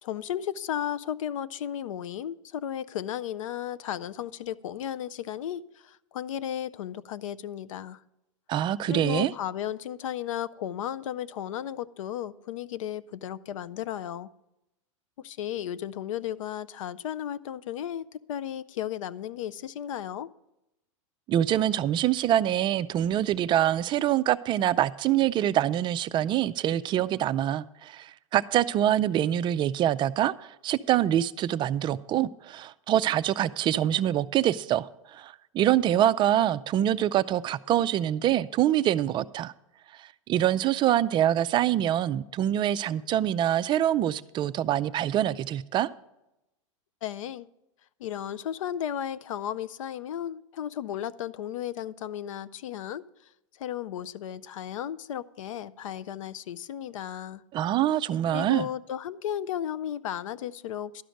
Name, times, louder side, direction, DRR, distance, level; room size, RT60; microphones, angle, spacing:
voice 1, 0.0-8.0 8.9-14.3 15.2-20.3 47.0-47.5 48.0-53.0 53.6-57.4 58.3-61.0, left 10 dB, 80° left, 0.5 m, -34 dB
voice 2, 8.5-9.3 21.3-39.5 39.9-45.9 57.5-58.7, right 11 dB, 30° right, 0.3 m, -25 dB
12.0 x 5.1 x 7.8 m
hypercardioid pair, 115°, 17 cm